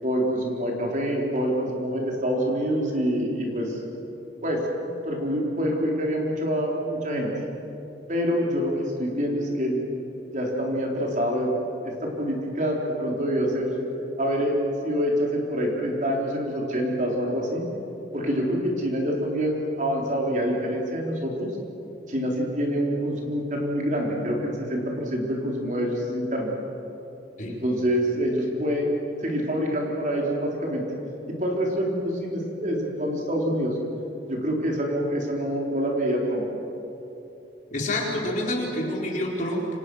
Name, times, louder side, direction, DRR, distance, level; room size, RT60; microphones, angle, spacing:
voice 1, 0.0-3.8 4.4-7.3 8.1-9.9 10.3-13.8 14.2-14.5 14.8-17.6 18.1-21.5 22.1-26.5 27.5-30.8 31.4-33.8 34.3-36.4, equal, 40° right, -1 dB, 4.2 m, -26 dB
voice 2, 37.7-39.8, left 1 dB, 40° left, -1 dB, 4.3 m, -27 dB
28.0 x 25.5 x 6.5 m, 3.0 s
head